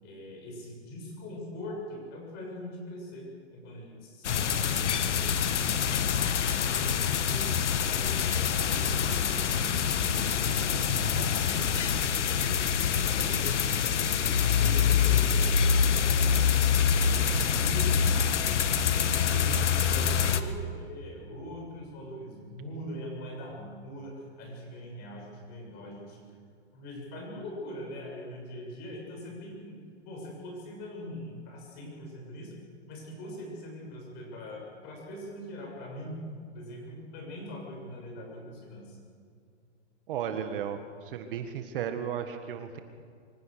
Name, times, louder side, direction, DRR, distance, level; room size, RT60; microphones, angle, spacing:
voice 1, 0.0-6.2 6.6-7.5 7.7-10.8 11.1-11.8 12.1-18.4 18.9-26.2 26.7-32.6 32.9-36.3 36.5-39.0, left 1 dB, 25° left, 1 dB, 6.6 m, -42 dB
sound 1, 4.2-20.4, left 7 dB, 80° left, 1.5 m, -26 dB
voice 2, 19.2-19.6 40.1-42.8, right 8 dB, 50° right, 7 dB, 1.8 m, -35 dB
25.5 x 15.5 x 6.5 m, 2.2 s
hypercardioid pair, 155°, 35 cm